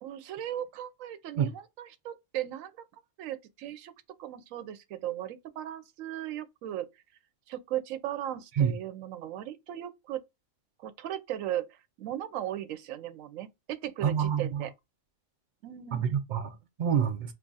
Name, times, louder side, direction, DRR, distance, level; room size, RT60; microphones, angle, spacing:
voice 1, 0.0-2.7 3.2-3.9 4.2-6.9 7.5-10.2 10.8-14.7 15.6-16.2, right 12 dB, 90° right, 1.0 m, -37 dB
voice 2, 14.0-14.6 15.9-17.3, right 8 dB, 65° right, 0.4 m, -27 dB
2.7 x 2.4 x 3.9 m
omnidirectional pair, 1.3 m